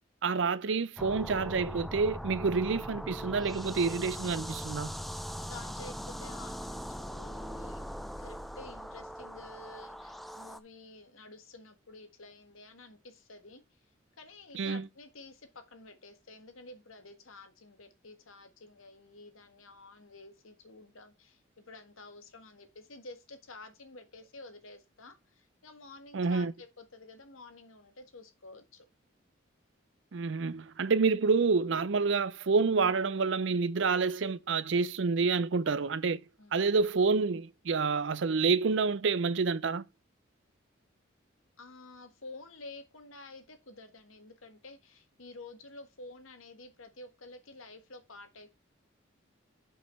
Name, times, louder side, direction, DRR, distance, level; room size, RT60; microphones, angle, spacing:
voice 1, 0.2-4.9 14.5-14.9 26.1-26.5 30.1-36.2 36.5-39.8, right 4 dB, 65° right, 0.5 m, -28 dB
sound 1, 1.0-10.6, equal, ahead, 0.3 m, -40 dB
voice 2, 5.4-13.8 14.2-28.9 36.4-36.6 41.6-48.5, left 2 dB, 85° left, 1.6 m, -51 dB
5.4 x 5.3 x 5.6 m
head